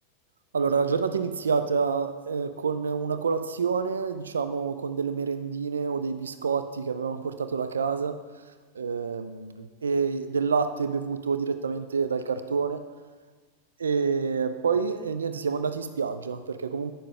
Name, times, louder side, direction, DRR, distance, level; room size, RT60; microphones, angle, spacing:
voice 1, 0.5-8.2 8.7-12.8 13.8-16.9, right 5 dB, 70° right, 10 dB, 0.3 m, -28 dB
8.8 x 6.5 x 3.6 m, 1.4 s
figure-of-eight pair, 90°, 0 cm